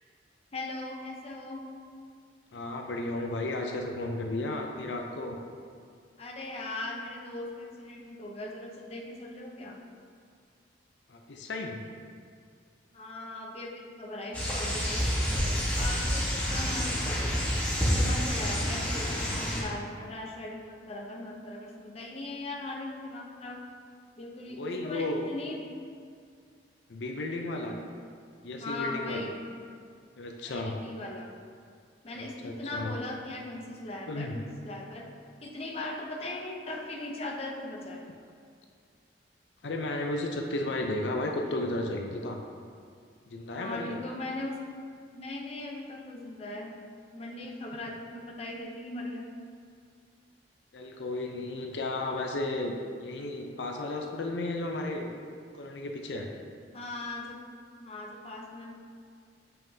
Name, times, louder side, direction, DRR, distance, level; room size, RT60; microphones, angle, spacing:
voice 1, 0.5-1.7 6.2-9.8 12.9-17.4 17.9-23.6 24.2-25.7 27.6-27.8 28.6-29.4 30.5-31.3 32.0-35.1 35.4-38.0 43.5-44.6 45.1-46.8 47.1-49.3 56.7-57.4 57.8-58.7, left 2 dB, 35° left, -1 dB, 0.7 m, -39 dB
voice 2, 2.5-5.4 11.1-11.8 24.5-25.2 26.9-27.7 28.4-29.3 30.2-30.8 32.2-32.9 34.1-34.4 39.6-42.4 43.3-44.0 50.7-55.1 55.5-56.3, left 2 dB, 80° left, 2 dB, 0.6 m, -33 dB
sound 1, 14.3-19.6, equal, 10° left, 1.2 m, -28 dB
7.3 x 5.5 x 2.7 m, 2.2 s
head